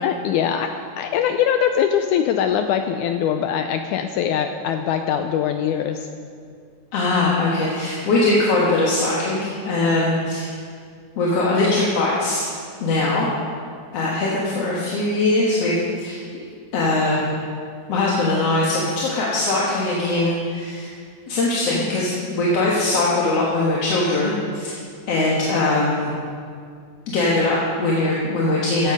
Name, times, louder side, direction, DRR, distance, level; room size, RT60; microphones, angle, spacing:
voice 1, 0.0-0.7 1.0-6.1, left 8 dB, 85° left, 6 dB, 1.8 m, -22 dB
voice 2, 6.9-10.5 11.2-12.5 12.8-13.3 13.9-16.2 16.7-17.2 17.9-20.9 21.3-24.8 25.1-26.1 27.1-28.9, left 2 dB, 55° left, -5 dB, 2.2 m, -21 dB
15.5 x 8.4 x 5.3 m, 2.2 s
omnidirectional pair, 4.0 m